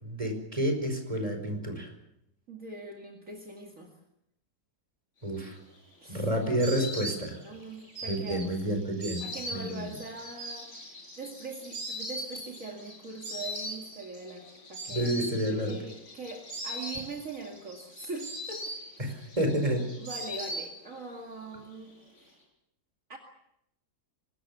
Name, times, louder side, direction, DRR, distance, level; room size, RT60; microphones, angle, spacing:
voice 1, 0.0-1.9 5.2-5.6 6.1-7.4 8.1-9.2 9.5-9.9 14.9-15.8 19.0-19.8, right 1 dB, 20° right, 4 dB, 5.2 m, -29 dB
voice 2, 2.5-3.9 6.0-6.3 7.4-8.5 9.2-15.1 15.4-19.1 20.0-21.9 22.2-22.3 23.1-23.2, right 3 dB, 50° right, 1 dB, 2.7 m, -42 dB
Insect, 5.4-21.2 21.4-22.2, equal, 45° left, 7.1 m, -41 dB
24.5 x 20.0 x 7.0 m, 0.80 s
omnidirectional pair, 1.8 m